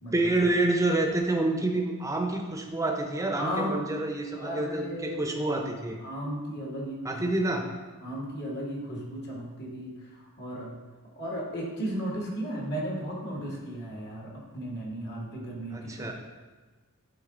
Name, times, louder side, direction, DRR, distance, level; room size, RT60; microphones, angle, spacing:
voice 1, 0.1-6.0 7.0-7.7 15.7-16.1, right 2 dB, 15° right, 3 dB, 0.7 m, -28 dB
voice 2, 3.4-3.8 4.3-5.4 6.0-7.2 8.0-10.8 11.1-16.1, equal, 50° left, -2 dB, 1.6 m, -35 dB
11.0 x 3.8 x 3.8 m, 1.3 s
head